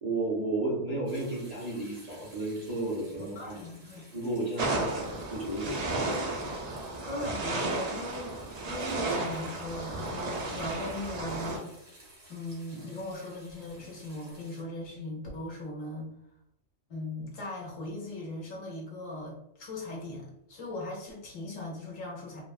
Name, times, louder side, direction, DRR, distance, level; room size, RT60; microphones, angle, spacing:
voice 1, 0.0-3.6 4.1-6.1, right 2 dB, 35° right, -6 dB, 0.8 m, -33 dB
sound 1, 1.1-14.6, right 1 dB, 55° right, 1.4 m, -55 dB
voice 2, 3.4-4.0 7.0-8.4 8.7-11.8 12.3-16.1 16.9-22.4, left 2 dB, 85° left, -2 dB, 1.3 m, -39 dB
sound 2, 4.6-11.6, right 2 dB, 80° right, 0.3 m, -33 dB
3.3 x 2.2 x 2.3 m, 0.76 s
omnidirectional pair, 1.3 m